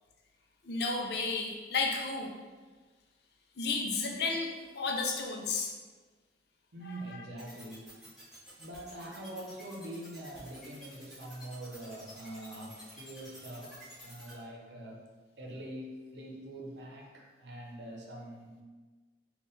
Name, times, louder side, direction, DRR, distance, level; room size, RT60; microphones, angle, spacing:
voice 1, 0.6-2.3 3.6-5.7 6.8-7.2, left 4 dB, 65° left, 1 dB, 0.5 m, -33 dB
voice 2, 6.7-7.9 8.6-15.0 15.4-18.6, right 1 dB, 80° right, -1 dB, 0.7 m, -44 dB
sound 1, 7.4-14.3, equal, ahead, 1.3 m, -51 dB
3.7 x 2.4 x 3.9 m, 1.4 s
head